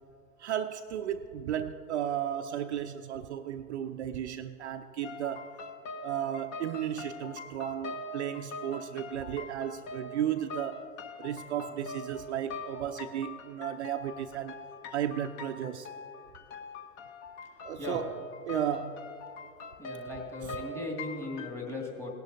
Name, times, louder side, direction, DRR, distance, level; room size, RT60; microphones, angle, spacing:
voice 1, 0.4-5.5 6.0-10.8 11.2-14.6 14.9-15.9 17.6-18.1 18.5-18.9 20.4-20.6, right 10 dB, 55° right, 8 dB, 0.5 m, -34 dB
sound 1, 5.0-21.5, left 3 dB, 25° left, 0.7 m, -43 dB
voice 2, 19.8-22.1, left 2 dB, 5° left, 1 dB, 2.0 m, -38 dB
18.0 x 11.0 x 2.7 m, 2.6 s
figure-of-eight pair, 105°, 43 cm